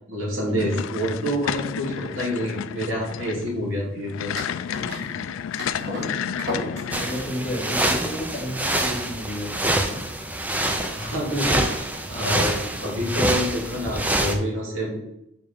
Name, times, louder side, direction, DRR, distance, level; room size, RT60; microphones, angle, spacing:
voice 1, 0.1-4.3 10.9-11.6 12.1-15.0, equal, 80° right, -3 dB, 2.6 m, -27 dB
sound 1, 0.6-7.3, left 8 dB, 80° left, 0.3 m, -31 dB
sound 2, 4.4-9.5, left 1 dB, 55° right, 2.2 m, -35 dB
voice 2, 4.8-5.2 5.9-10.0, equal, 35° left, -1 dB, 1.5 m, -33 dB
sound 3, 6.9-14.3, right 1 dB, 10° right, 0.5 m, -26 dB
5.1 x 4.8 x 5.1 m, 0.80 s
head